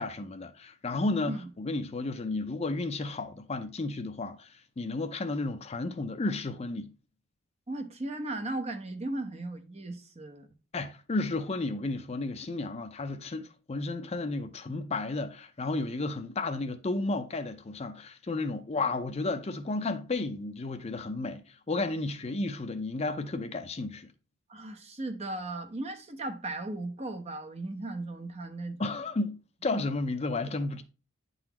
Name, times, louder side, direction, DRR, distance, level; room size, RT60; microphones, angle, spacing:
voice 1, 0.0-6.9 10.7-24.1 28.8-30.8, left 2 dB, 30° left, 0.4 m, -33 dB
voice 2, 7.7-10.5 24.5-29.0, right 2 dB, 30° right, 0.8 m, -37 dB
9.5 x 4.0 x 2.9 m
head